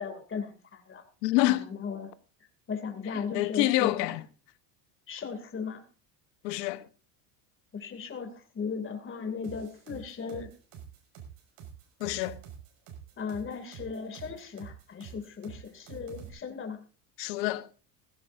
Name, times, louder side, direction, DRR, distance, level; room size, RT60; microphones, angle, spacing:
voice 1, 0.0-1.0 1.5-2.1 2.7-4.1 5.1-5.8 7.7-10.5 13.2-16.8, left 5 dB, 25° left, 2.6 m, -37 dB
voice 2, 1.2-1.7 3.3-4.2 6.4-6.9 12.0-12.4 17.2-17.7, left 18 dB, 85° left, 1.2 m, -27 dB
sound 1, 9.4-16.3, right 8 dB, 60° right, 5.8 m, -47 dB
16.5 x 16.0 x 2.6 m
supercardioid pair, 130°, 48 cm